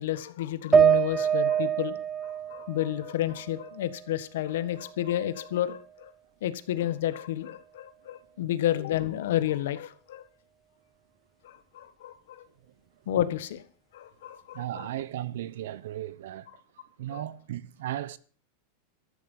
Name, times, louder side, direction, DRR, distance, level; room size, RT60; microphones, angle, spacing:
voice 1, 0.0-2.0 2.2-6.1 6.4-10.2 11.4-12.4 13.1-13.6 13.9-14.9 17.1-17.2, left 12 dB, 75° left, 1.5 m, -31 dB
sound 1, 0.7-4.1 4.5-5.6, right 8 dB, 10° right, 0.6 m, -26 dB
voice 2, 14.5-16.5 17.0-18.2, right 13 dB, 75° right, 1.0 m, -35 dB
13.0 x 12.5 x 5.6 m
supercardioid pair, 170°, 0 cm